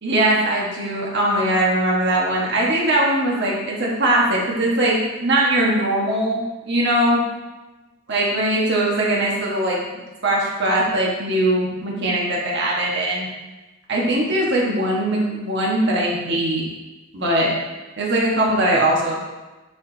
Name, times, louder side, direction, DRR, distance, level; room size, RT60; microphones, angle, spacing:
voice 1, 0.0-7.2 8.1-9.8 10.2-13.3 13.9-16.6 17.1-17.5 18.0-19.2, right 1 dB, 60° right, -4 dB, 1.4 m, -20 dB
9.7 x 5.1 x 2.8 m, 1.1 s
head